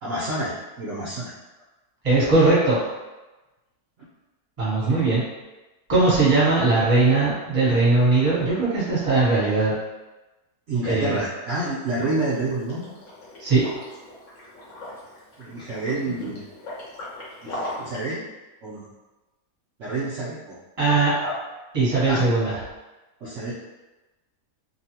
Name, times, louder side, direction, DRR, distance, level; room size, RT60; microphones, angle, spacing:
voice 1, 0.0-1.3 4.8-5.1 10.7-12.9 15.4-16.4 17.4-18.2 18.6-18.9 19.8-20.6 20.9-21.4 22.1-22.3 23.2-23.5, right 2 dB, 60° right, -9 dB, 1.0 m, -29 dB
voice 2, 2.0-2.8 4.6-5.2 5.9-9.7 10.8-11.2 13.4-13.6 20.8-21.1 21.7-22.6, right 3 dB, 25° right, -8 dB, 1.0 m, -19 dB
Liquid, 11.9-18.0, left 1 dB, 55° left, 1.1 m, -39 dB
2.9 x 2.3 x 2.8 m, 1.1 s
omnidirectional pair, 1.7 m